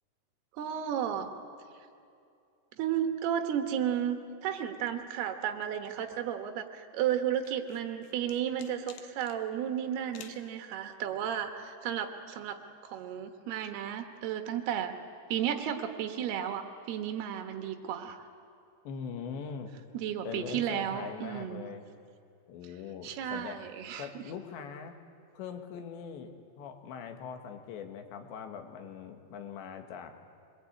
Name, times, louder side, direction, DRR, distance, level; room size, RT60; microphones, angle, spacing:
voice 1, 0.5-1.3 2.8-14.9 15.3-18.3 19.9-21.7 23.0-24.2, right 9 dB, 70° right, 6 dB, 3.3 m, -33 dB
sound 1, 7.4-9.4 10.1-10.5, left 10 dB, 65° left, 2.6 m, -50 dB
voice 2, 18.9-19.7 20.2-21.8 22.5-23.6 24.0-24.9 25.3-30.1, left 6 dB, 90° left, 5 dB, 3.9 m, -41 dB
25.5 x 21.5 x 8.7 m, 2.5 s
omnidirectional pair, 4.9 m